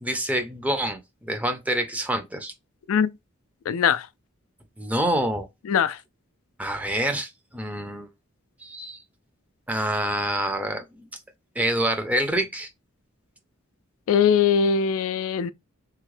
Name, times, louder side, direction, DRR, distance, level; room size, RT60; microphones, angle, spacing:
voice 1, 0.0-2.5 4.8-5.5 6.6-8.1 8.6-9.0 9.7-11.0 11.6-12.7, right 1 dB, 5° right, 0.5 m, -27 dB
voice 2, 3.7-4.1 5.7-6.0 14.1-15.5, left 7 dB, 80° left, 0.3 m, -21 dB
3.5 x 2.1 x 3.1 m
head